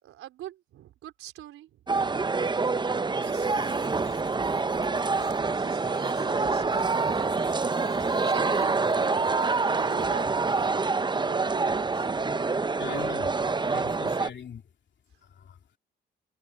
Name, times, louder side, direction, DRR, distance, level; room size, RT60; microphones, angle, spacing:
voice 1, 0.0-2.2 3.2-3.9 5.6-7.4 8.2-8.8 9.3-12.1, right 13 dB, 85° right, 4.3 m, -44 dB
sound 1, 1.9-14.3, right 4 dB, 20° right, 0.7 m, -26 dB
sound 2, 3.2-10.7, left 3 dB, 30° left, 7.9 m, -53 dB
voice 2, 12.8-13.3 13.7-14.6 15.2-15.6, left 7 dB, 60° left, 3.2 m, -40 dB
supercardioid pair, 65°, 21 cm